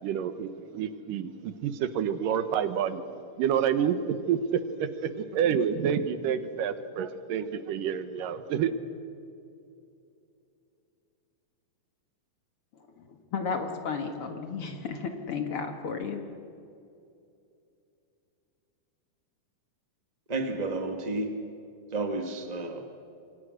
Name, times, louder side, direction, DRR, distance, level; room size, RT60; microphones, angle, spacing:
voice 1, 0.0-3.0 3.4-8.7, right 8 dB, 85° right, 11 dB, 2.8 m, -28 dB
voice 2, 13.3-16.2, left 5 dB, 50° left, 5 dB, 2.2 m, -33 dB
voice 3, 20.3-21.4 21.9-22.8, right 2 dB, 45° right, 5 dB, 0.5 m, -31 dB
28.0 x 23.5 x 6.4 m, 2.6 s
omnidirectional pair, 3.7 m